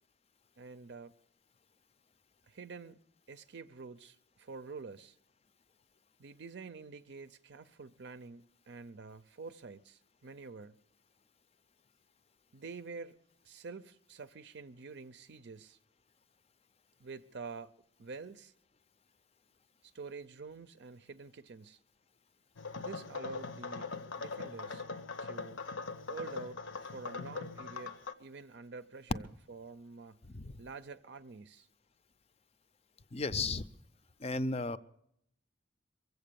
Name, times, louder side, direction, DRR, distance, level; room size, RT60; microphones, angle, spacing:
voice 1, 0.6-1.1 2.5-3.0 3.3-5.2 6.2-10.8 12.5-13.2 13.4-15.8 17.0-17.7 18.0-18.5 19.8-21.8 22.7-24.8 25.2-25.6 26.0-30.2 30.6-31.7, right 4 dB, 60° right, 0.5 m, -47 dB
sound 1, 22.6-28.1, left 4 dB, 75° left, 0.8 m, -41 dB
voice 2, 33.1-33.7 34.2-34.8, left 3 dB, 30° left, 0.5 m, -34 dB
23.0 x 8.1 x 6.8 m
head